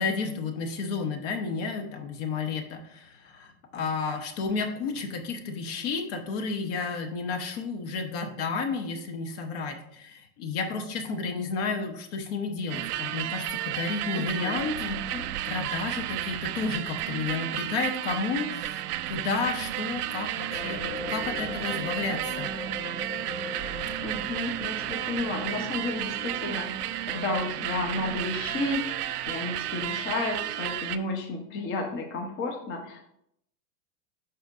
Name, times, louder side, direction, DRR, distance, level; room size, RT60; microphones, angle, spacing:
voice 1, 0.0-15.1 15.4-22.5, left 4 dB, 50° left, 5 dB, 1.1 m, -32 dB
sound 1, 12.7-31.0, right 13 dB, 80° right, 0.6 m, -32 dB
voice 2, 14.1-14.6 14.8-15.3 24.0-33.0, left 2 dB, 25° left, 2 dB, 0.9 m, -32 dB
sound 2, 20.5-29.4, left 3 dB, 80° left, 2.9 m, -41 dB
11.5 x 4.3 x 2.6 m, 0.74 s
supercardioid pair, 145°, 45 cm